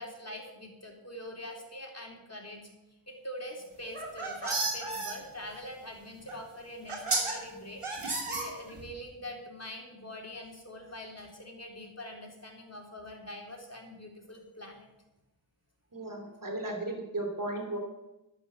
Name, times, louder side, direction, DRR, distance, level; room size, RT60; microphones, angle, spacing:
voice 1, 0.0-2.6 3.1-14.9, left 1 dB, 30° left, 0 dB, 3.7 m, -44 dB
sound 1, 3.8-5.1 6.3-6.4 6.9-7.3 7.8-8.9, right 3 dB, 85° right, 3.1 m, -32 dB
voice 2, 15.9-17.8, right 2 dB, 40° right, 4 dB, 2.8 m, -35 dB
11.5 x 9.9 x 7.2 m, 0.94 s
wide cardioid pair, 45°, 49 cm